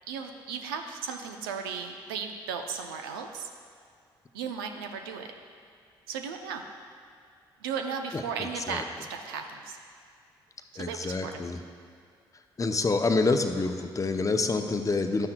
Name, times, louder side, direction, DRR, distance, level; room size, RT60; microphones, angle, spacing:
voice 1, 0.1-3.5 4.3-5.3 6.1-6.7 7.6-9.8 10.7-11.4, right 6 dB, 90° right, 5 dB, 0.5 m, -35 dB
voice 2, 8.1-8.8 10.8-11.6 12.6-15.3, left 3 dB, 30° left, 6 dB, 0.7 m, -27 dB
11.5 x 9.5 x 2.2 m, 2.2 s
hypercardioid pair, 45°, 11 cm